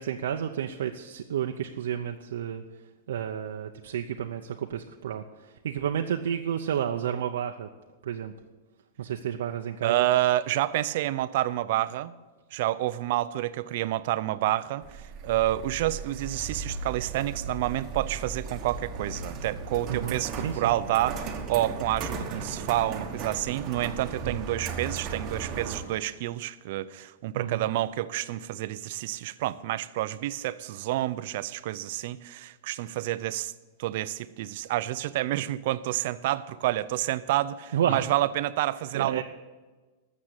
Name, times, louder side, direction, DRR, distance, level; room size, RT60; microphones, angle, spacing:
voice 1, 0.0-2.6 3.1-7.7 8.0-8.3 9.0-10.1 19.9-20.7 24.2-24.4 27.4-27.7 37.7-38.1 38.9-39.2, right 9 dB, 85° right, 3 dB, 0.7 m, -31 dB
voice 2, 9.8-12.1 12.5-33.5 33.8-39.2, right 15 dB, 45° right, 15 dB, 0.5 m, -29 dB
sound 1, 14.8-25.8, right 4 dB, 20° right, 1.2 m, -36 dB
12.5 x 7.5 x 8.3 m, 1.3 s
supercardioid pair, 180°, 0 cm